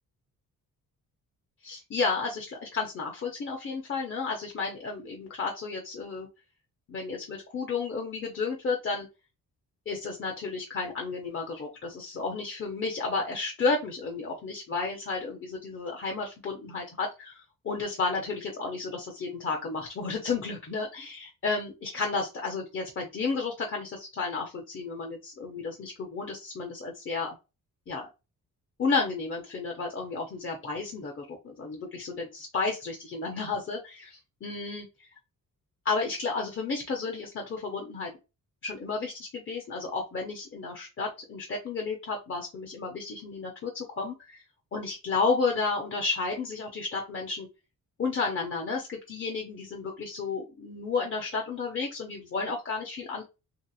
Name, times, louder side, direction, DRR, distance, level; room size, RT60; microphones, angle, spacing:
voice 1, 1.6-6.3 6.9-9.1 9.9-27.3 27.9-28.1 28.8-35.1 35.8-38.1 38.6-44.4 44.7-47.5 48.0-53.2, left 4 dB, 40° left, 0 dB, 0.5 m, -32 dB
3.2 x 2.8 x 2.3 m, 0.28 s
wide cardioid pair, 170°, 34 cm